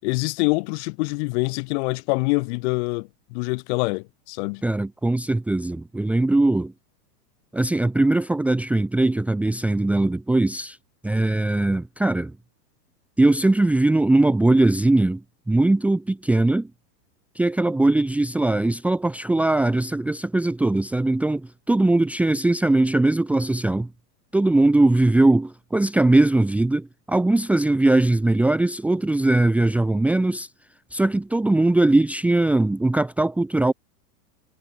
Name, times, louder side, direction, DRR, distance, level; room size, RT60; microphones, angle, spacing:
voice 1, 0.0-4.6, left 29 dB, 40° left, 5.4 m, -25 dB
voice 2, 4.6-6.7 7.5-10.8 11.0-12.3 13.2-15.2 15.5-16.7 17.3-23.9 24.3-30.5 30.9-33.7, right 2 dB, 5° right, 1.4 m, -20 dB
supercardioid pair, 165°, 49 cm